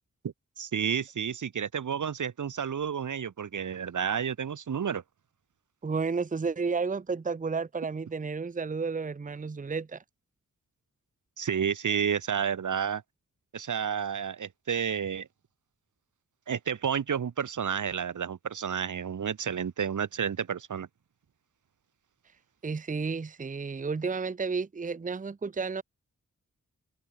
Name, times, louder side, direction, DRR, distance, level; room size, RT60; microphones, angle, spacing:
voice 1, 0.6-5.0 11.4-13.0 13.5-15.3 16.5-20.9, right 7 dB, 80° right, 1.6 m, -31 dB
voice 2, 5.8-10.0 22.6-25.8, right 4 dB, 25° right, 0.7 m, -32 dB
wide cardioid pair, 95°, 30 cm